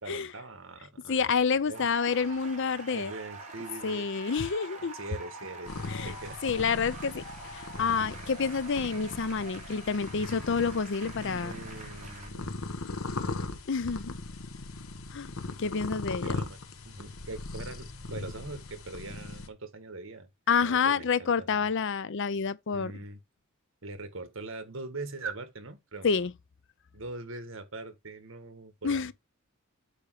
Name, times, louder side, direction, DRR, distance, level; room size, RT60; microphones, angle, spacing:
voice 1, 0.0-1.3 1.7-2.1 2.9-4.1 4.9-5.7 6.0-6.4 11.1-12.6 16.2-16.6 16.8-20.3 20.6-21.7 22.7-23.2 23.8-26.1 26.9-29.1, right 3 dB, 65° right, 1.6 m, -42 dB
voice 2, 1.1-3.1 3.8-5.0 5.9-6.1 6.4-7.2 7.5-11.5 13.7-14.1 15.1-15.3 15.6-16.4 20.5-22.9 26.0-26.3 28.8-29.1, left 5 dB, 60° left, 0.6 m, -28 dB
sound 1, 1.7-12.3, right 2 dB, 35° right, 2.7 m, -45 dB
sound 2, 5.7-19.5, left 3 dB, 80° left, 1.1 m, -39 dB
8.4 x 3.1 x 6.3 m
head